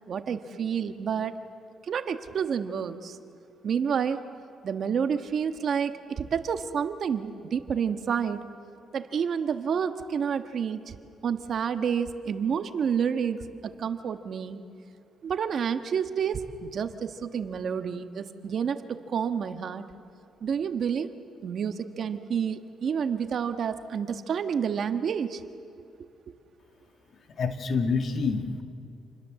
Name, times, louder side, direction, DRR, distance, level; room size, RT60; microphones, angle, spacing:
voice 1, 0.1-1.3 1.9-3.2 3.6-4.2 4.6-8.4 8.9-11.0 11.2-14.6 15.2-19.8 20.4-21.1 21.4-25.4, right 7 dB, 55° right, 8 dB, 1.4 m, -29 dB
voice 2, 27.4-28.6, left 4 dB, 55° left, 6 dB, 2.2 m, -27 dB
28.5 x 20.5 x 7.7 m, 2.8 s
cardioid pair, 90°, 0 cm